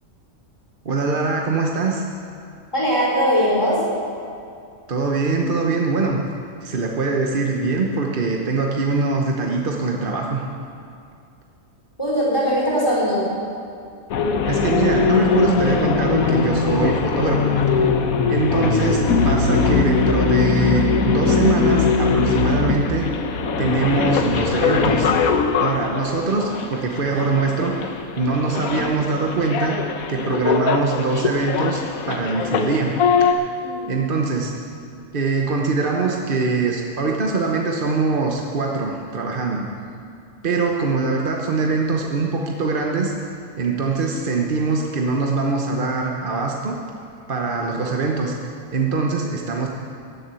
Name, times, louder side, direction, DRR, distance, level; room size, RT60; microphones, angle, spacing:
voice 1, 0.8-2.0 4.9-6.2 6.6-10.4 14.5-17.6 18.3-23.1 23.6-25.1 25.6-27.8 28.2-29.8 30.1-32.9 33.2-33.3 33.9-34.5 35.1-39.7 40.4-43.1 43.6-46.8 47.3-48.3 48.7-49.7, right 3 dB, 40° right, 0 dB, 1.1 m, -22 dB
voice 2, 2.7-3.8 12.0-13.3 33.6-33.9, equal, 20° left, -6 dB, 4.3 m, -20 dB
sound 1, 14.1-33.3, left 5 dB, 85° left, 1.3 m, -21 dB
15.5 x 7.2 x 9.0 m, 2.4 s
omnidirectional pair, 1.5 m